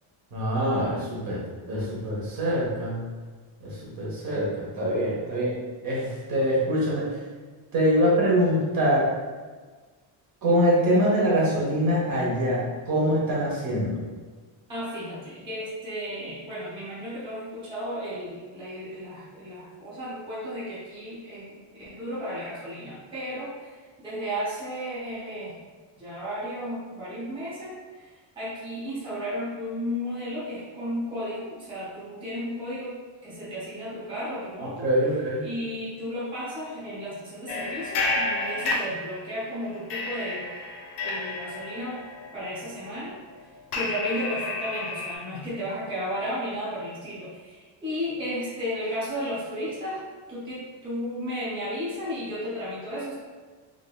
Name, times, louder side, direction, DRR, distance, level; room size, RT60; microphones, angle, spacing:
voice 1, 0.3-1.4 1.7-3.0 3.6-5.5 5.8-7.0 7.7-9.1 10.4-14.0 34.8-35.4, equal, 45° right, -6 dB, 1.0 m, -24 dB
voice 2, 14.7-25.5 26.0-34.9 35.4-40.5 41.0-42.0 42.3-43.1 43.7-53.1, equal, 10° right, -10 dB, 0.7 m, -34 dB
sound 1, 37.5-39.4 39.9-45.1, left 2 dB, 50° left, 0.6 m, -31 dB
3.7 x 3.3 x 2.3 m, 1.4 s
cardioid pair, 180°, 50 cm